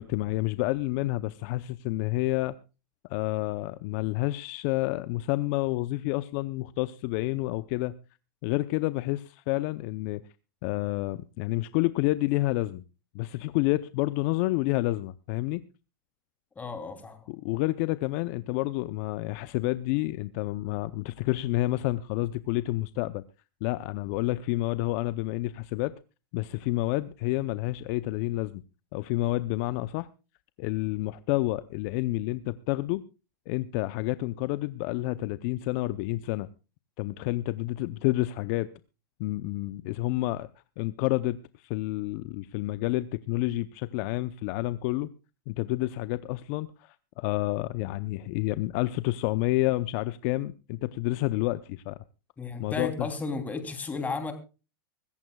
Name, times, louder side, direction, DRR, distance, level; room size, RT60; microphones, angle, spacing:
voice 1, 0.0-2.5 3.1-7.9 8.4-10.2 10.6-12.8 13.1-15.6 17.3-23.2 23.6-25.9 26.3-28.6 28.9-30.1 30.6-33.0 33.5-36.5 37.0-38.7 39.2-40.5 40.8-45.1 45.5-52.0 52.6-53.1, left 18 dB, 45° left, 0.6 m, -29 dB
voice 2, 16.5-17.3 52.4-54.3, left 4 dB, 15° left, 3.0 m, -34 dB
24.5 x 14.5 x 2.3 m
hypercardioid pair, 135°, 12 cm